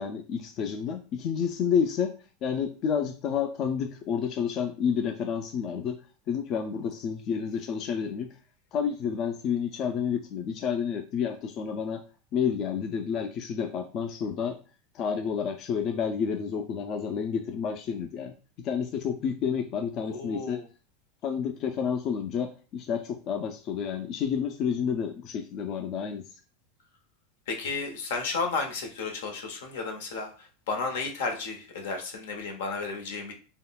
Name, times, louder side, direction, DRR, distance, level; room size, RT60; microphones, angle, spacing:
voice 1, 0.0-2.1 2.4-6.0 6.3-8.3 8.7-12.0 12.3-14.6 14.9-20.6 21.2-26.2, left 7 dB, 45° left, 5 dB, 0.4 m, -30 dB
voice 2, 20.0-20.6 27.5-30.3 30.7-33.3, left 4 dB, 85° left, 3 dB, 0.7 m, -32 dB
3.5 x 2.1 x 2.3 m, 0.35 s
supercardioid pair, 125°, 0 cm